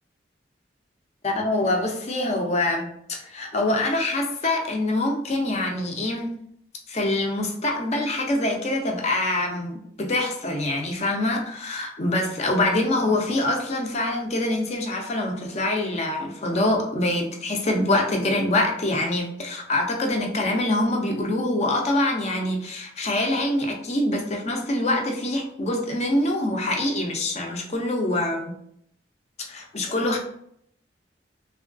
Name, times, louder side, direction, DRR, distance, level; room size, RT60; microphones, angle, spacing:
voice 1, 1.2-6.3 6.9-28.6 29.5-30.2, left 1 dB, 35° left, 2 dB, 0.5 m, -25 dB
3.2 x 2.2 x 2.4 m, 0.70 s
head